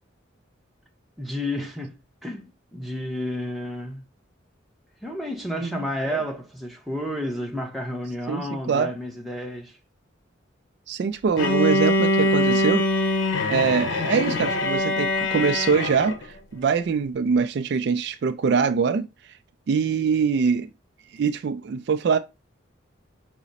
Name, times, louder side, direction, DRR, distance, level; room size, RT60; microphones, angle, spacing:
voice 1, 1.2-2.0 2.2-4.0 5.0-9.8, left 1 dB, ahead, 0.8 m, -31 dB
voice 2, 5.6-6.2 8.3-8.9 10.9-12.9 13.5-19.1 19.7-20.7 21.1-22.2, right 6 dB, 60° right, 0.3 m, -23 dB
Bowed string instrument, 11.4-16.2, left 2 dB, 85° left, 0.8 m, -23 dB
4.8 x 2.1 x 4.0 m
head